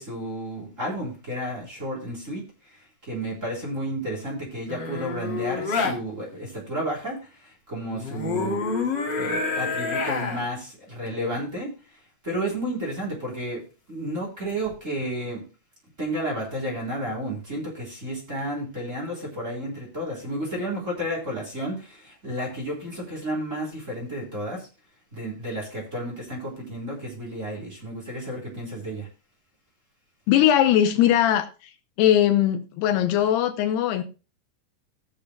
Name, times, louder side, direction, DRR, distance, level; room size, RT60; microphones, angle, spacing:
voice 1, 0.0-8.6 9.1-15.5 16.0-24.7 25.1-29.1, right 1 dB, 20° right, 3.6 m, -32 dB
sound 1, 4.7-6.0 7.9-10.5 14.5-14.7, left 4 dB, 55° left, 1.3 m, -28 dB
voice 2, 30.3-31.5 32.0-34.0, left 11 dB, 80° left, 2.8 m, -20 dB
20.0 x 6.8 x 2.2 m
omnidirectional pair, 4.8 m